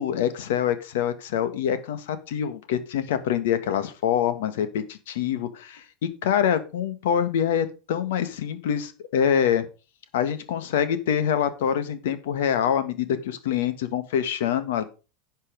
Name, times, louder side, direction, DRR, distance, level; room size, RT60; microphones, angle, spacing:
voice 1, 0.0-9.6 10.1-14.8, left 9 dB, 80° left, 12 dB, 1.6 m, -25 dB
10.5 x 5.6 x 5.2 m, 0.32 s
supercardioid pair, 125°, 0 cm